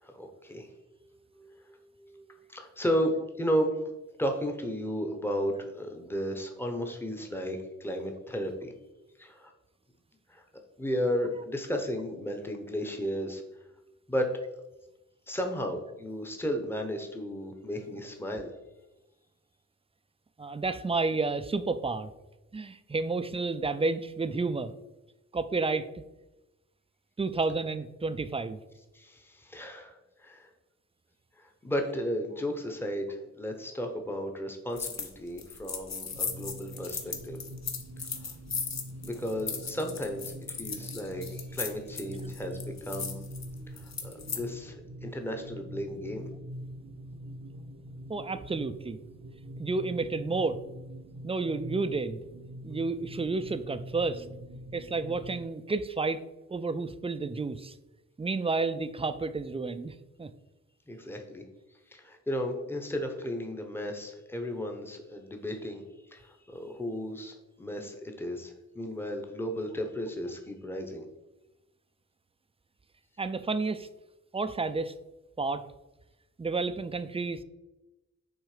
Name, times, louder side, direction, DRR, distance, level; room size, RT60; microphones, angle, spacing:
voice 1, 0.0-0.8 1.3-3.8 4.2-8.7 9.2-9.5 10.3-10.4 10.8-13.4 14.1-14.3 15.3-18.5 28.9-30.5 31.4-37.4 39.0-43.2 43.7-46.3 60.9-61.4 61.9-65.8 66.1-71.1, equal, 5° left, 3 dB, 0.8 m, -34 dB
voice 2, 20.4-22.1 22.5-24.7 25.3-25.9 27.2-28.6 48.1-49.0 49.6-50.6 51.2-52.2 52.6-54.3 54.7-56.2 56.5-57.7 58.2-60.3 73.2-73.9 74.3-74.9 75.4-75.6 76.4-77.4, right 3 dB, 20° right, 12 dB, 0.3 m, -31 dB
sound 1, 34.8-35.1 35.4-44.4, left 5 dB, 60° left, 0.8 m, -37 dB
sound 2, 36.1-55.5, equal, 85° right, 0.8 m, -44 dB
6.3 x 3.7 x 4.9 m, 1.0 s
wide cardioid pair, 90°, 31 cm